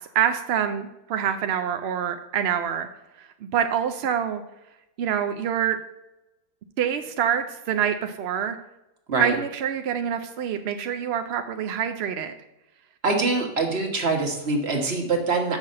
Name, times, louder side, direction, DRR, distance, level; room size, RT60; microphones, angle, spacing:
voice 1, 0.1-2.9 3.5-4.4 5.0-5.8 6.8-8.6 9.2-12.3, right 9 dB, 65° right, 7 dB, 0.6 m, -26 dB
voice 2, 13.0-15.6, right 3 dB, 45° right, 1 dB, 1.5 m, -24 dB
6.2 x 5.7 x 6.5 m, 0.94 s
omnidirectional pair, 1.6 m